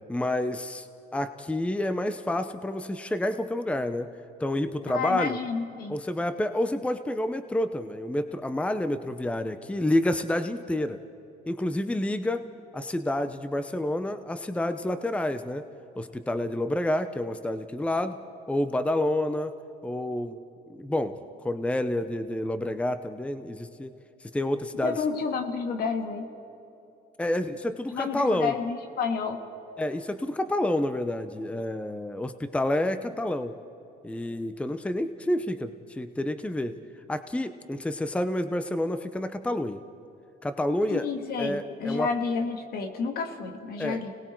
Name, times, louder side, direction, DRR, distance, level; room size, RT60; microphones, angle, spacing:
voice 1, 0.1-4.1 4.4-5.4 5.9-11.0 11.5-12.4 12.7-15.7 16.0-18.2 18.5-19.5 19.8-20.4 20.7-23.9 24.2-24.9 27.2-28.5 29.8-33.5 34.0-36.7 37.1-39.8 40.4-41.1 41.4-42.1 43.8-44.0, left 1 dB, 5° left, 10 dB, 0.7 m, -29 dB
voice 2, 4.9-6.0 24.8-26.3 27.9-29.4 40.9-44.1, left 5 dB, 65° left, 5 dB, 2.2 m, -30 dB
30.0 x 19.5 x 4.6 m, 2.8 s
cardioid pair, 110°, 17 cm